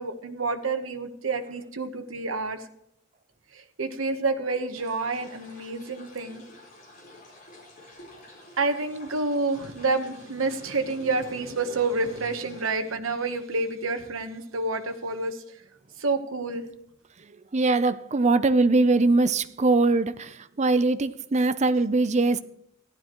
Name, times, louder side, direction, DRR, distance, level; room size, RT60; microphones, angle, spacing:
voice 1, 0.0-2.6 3.5-6.4 8.6-15.4 16.0-16.7, right 3 dB, 80° right, 1.1 m, -28 dB
sound 1, 4.7-12.7, left 2 dB, 45° left, 4.2 m, -50 dB
voice 2, 17.3-22.4, right 3 dB, 35° right, 0.5 m, -22 dB
15.0 x 12.0 x 3.0 m
head